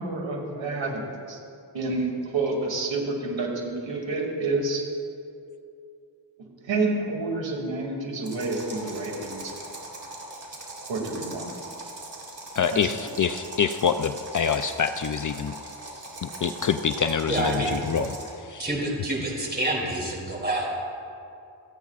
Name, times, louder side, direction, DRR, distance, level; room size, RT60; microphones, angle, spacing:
voice 1, 0.0-1.4 1.7-4.8 6.6-9.6 10.9-11.5 12.7-12.8, right 3 dB, 75° right, -1 dB, 2.5 m, -29 dB
sound 1, 8.2-18.4, right 2 dB, 40° right, 3.4 m, -40 dB
voice 2, 12.6-15.5 16.2-18.6, left 7 dB, 45° left, 9 dB, 0.5 m, -26 dB
voice 3, 17.3-17.8 18.6-20.8, right 1 dB, 20° right, -2 dB, 3.0 m, -27 dB
28.0 x 9.3 x 2.4 m, 2.5 s
wide cardioid pair, 90°, 45 cm